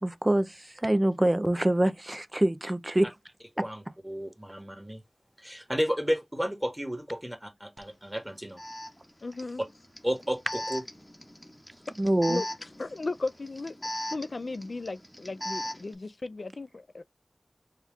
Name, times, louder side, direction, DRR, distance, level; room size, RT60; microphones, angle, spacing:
voice 1, 0.0-3.1 12.0-12.4, right 1 dB, 30° right, 0.5 m, -25 dB
voice 2, 3.6-5.0 5.4-8.6 10.0-10.8, equal, 15° right, 1.3 m, -32 dB
Alarm, 7.8-7.9 8.6-15.9, left 1 dB, 15° left, 0.8 m, -39 dB
voice 3, 9.2-9.6 12.3-12.5 12.8-13.8 14.1-17.0, left 3 dB, 80° left, 0.3 m, -35 dB
4.4 x 2.3 x 3.5 m
wide cardioid pair, 50°, 0 cm